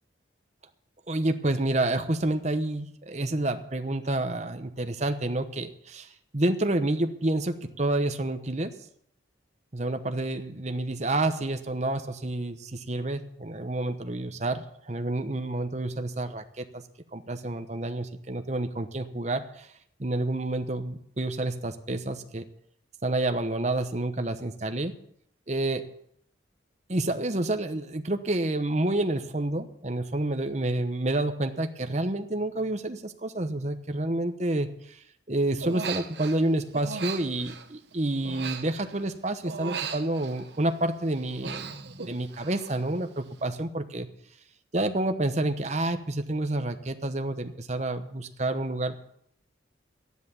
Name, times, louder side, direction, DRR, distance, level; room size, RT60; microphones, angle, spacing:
voice 1, 1.1-6.1 6.3-8.7 9.7-16.8 17.1-19.7 20.0-22.4 23.0-24.9 25.5-25.9 26.9-35.0 35.3-44.1 44.7-48.9, right 2 dB, 35° right, 7 dB, 1.0 m, -29 dB
Human voice, 35.6-36.4 36.7-39.1 39.5-40.7 41.1-42.9 43.1-43.5, right 5 dB, 65° right, 1.1 m, -38 dB
13.0 x 10.5 x 7.1 m, 0.70 s
head